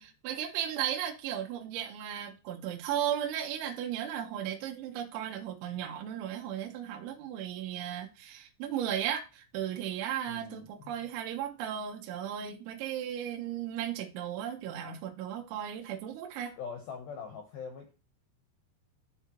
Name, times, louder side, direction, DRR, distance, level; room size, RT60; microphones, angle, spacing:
voice 1, 0.0-16.5, right 10 dB, 75° right, 3.3 m, -35 dB
voice 2, 10.3-11.0 16.6-17.9, left 6 dB, 75° left, 2.2 m, -42 dB
12.5 x 4.3 x 2.9 m
omnidirectional pair, 5.7 m